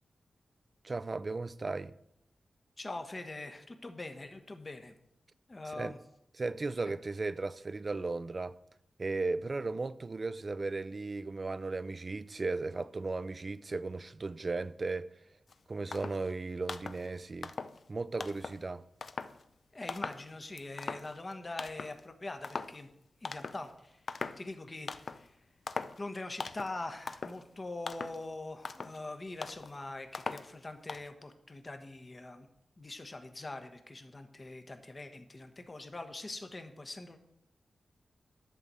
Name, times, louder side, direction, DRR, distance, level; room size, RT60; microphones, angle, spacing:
voice 1, 0.8-1.9 5.7-5.9 6.4-8.6 9.0-15.1 15.7-17.5 17.9-18.8, right 3 dB, 40° right, 0.4 m, -36 dB
voice 2, 2.8-4.9 5.5-6.0 19.7-22.9 23.2-24.0 24.4-25.5 26.0-32.5 32.8-37.2, left 2 dB, 30° left, 1.1 m, -43 dB
sound 1, 15.5-15.6 15.9-16.3 16.6-17.1 17.4-17.8 18.2-18.6 19.0-19.4 19.9-20.3 20.6-21.3 21.6-22.0 22.4-22.8 23.2-23.7 24.1-24.5 24.9-25.3 25.7-26.0 26.4-26.8 27.1-27.4 27.9-28.2 28.6-29.0 29.4-29.7 30.1-30.5 30.9-31.1, left 4 dB, 60° left, 0.5 m, -40 dB
11.0 x 4.1 x 7.5 m
wide cardioid pair, 90°, 0 cm